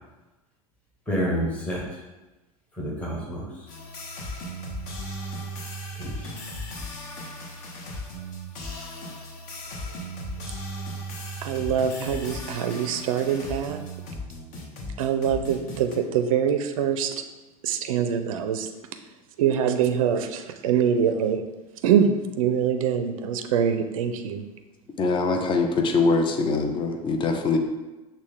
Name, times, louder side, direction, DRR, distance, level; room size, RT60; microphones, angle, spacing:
voice 1, 1.1-2.0 2.8-3.7 6.0-6.3, equal, 5° left, -5 dB, 1.2 m, -29 dB
sound 1, 3.7-16.0, equal, 45° left, 0.9 m, -36 dB
voice 2, 11.4-13.8 15.0-17.1 17.6-18.7 19.4-21.4 21.8-24.4, right 8 dB, 65° right, 7 dB, 0.4 m, -24 dB
voice 3, 25.0-27.6, left 3 dB, 25° left, 4 dB, 0.5 m, -23 dB
6.1 x 2.1 x 3.6 m, 1.1 s
figure-of-eight pair, 80°, 19 cm